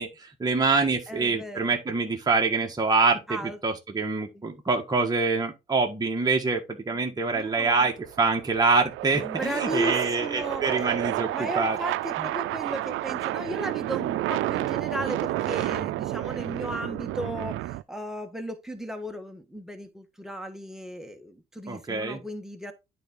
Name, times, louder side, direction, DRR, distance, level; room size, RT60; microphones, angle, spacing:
voice 1, 0.0-11.8 21.7-22.2, right 4 dB, 20° right, 1.6 m, -25 dB
voice 2, 1.1-1.8 3.3-3.6 4.3-4.4 6.9-7.9 9.1-10.6 11.3-22.7, right 1 dB, ahead, 1.5 m, -35 dB
sound 1, 7.4-17.8, right 15 dB, 85° right, 0.5 m, -30 dB
9.2 x 4.1 x 3.7 m
cardioid pair, 90°, 20 cm